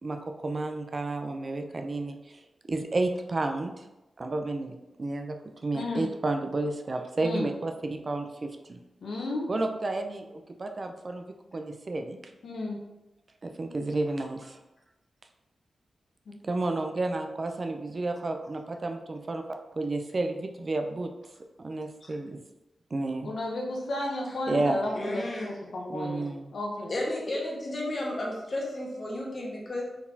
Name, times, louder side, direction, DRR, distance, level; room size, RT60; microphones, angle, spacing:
voice 1, 0.0-2.2 2.7-3.7 4.2-5.4 5.6-8.8 9.5-11.2 11.5-12.3 13.4-14.6 16.4-19.4 19.7-21.1 21.6-22.4 22.9-23.3 24.5-24.9 25.9-26.5, right 2 dB, 45° right, 5 dB, 0.4 m, -31 dB
voice 2, 5.7-6.1 7.2-7.5 9.0-9.5 12.4-12.8 16.3-16.4 23.2-26.9, left 2 dB, 80° left, -1 dB, 0.8 m, -33 dB
voice 3, 24.9-25.6 26.9-29.8, left 1 dB, 50° left, -3 dB, 1.3 m, -33 dB
4.2 x 4.0 x 2.8 m, 0.98 s
cardioid pair, 65°, 0 cm